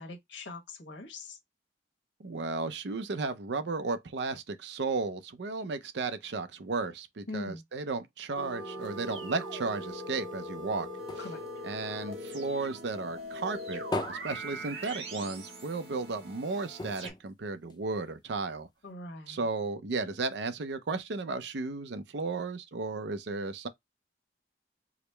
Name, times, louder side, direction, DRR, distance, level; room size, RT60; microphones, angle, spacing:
voice 1, 0.0-1.4 7.3-7.6 11.2-11.4 18.8-19.5, left 2 dB, 75° left, 1.1 m, -42 dB
voice 2, 2.2-10.9 11.2-11.3 11.6-18.7 19.3-23.7, right 3 dB, 65° right, 0.5 m, -34 dB
sound 1, 8.3-17.1, right 1 dB, 85° right, 1.4 m, -41 dB
sound 2, 10.2-12.8 13.2-15.4 15.8-15.9 16.2-16.3 16.7-18.3 18.9-19.0, left 2 dB, 20° left, 0.5 m, -41 dB
4.9 x 2.0 x 3.2 m
head